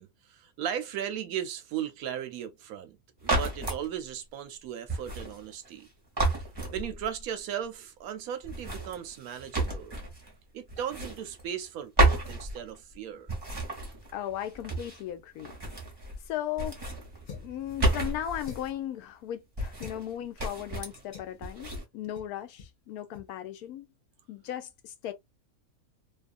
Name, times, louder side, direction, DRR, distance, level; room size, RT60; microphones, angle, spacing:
voice 1, 0.0-3.0 3.2-5.9 6.7-10.0 10.5-13.3, right 9 dB, 75° right, 1.0 m, -37 dB
sound 1, 3.2-3.8 4.9-5.9 6.2-7.2 8.4-10.3 10.7-11.7 12.0-12.9 13.3-15.1 15.4-16.3 16.5-18.7 19.6-20.1 20.4-21.0 21.4-21.8, right 2 dB, 20° right, 0.9 m, -31 dB
voice 2, 14.1-15.5 16.3-16.8 17.3-23.9 24.3-25.1, left 11 dB, 90° left, 1.1 m, -37 dB
sound 2, 17.3-17.6 18.4-18.8 19.8-20.0 21.1-21.4 22.1-22.3 22.6-22.8 23.1-23.3, left 7 dB, 40° left, 0.7 m, -45 dB
2.7 x 2.4 x 2.4 m
omnidirectional pair, 1.6 m